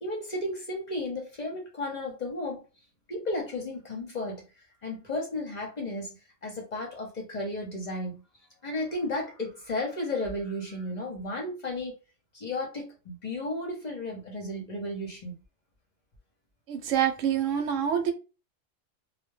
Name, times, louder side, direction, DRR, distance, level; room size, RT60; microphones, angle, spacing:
voice 1, 0.0-2.6 3.1-4.4 4.8-6.2 6.4-8.2 8.6-12.0 12.3-15.4, left 1 dB, 45° left, 0.7 m, -33 dB
voice 2, 16.7-18.1, right 9 dB, 85° right, 0.9 m, -26 dB
2.2 x 2.1 x 3.1 m
omnidirectional pair, 1.3 m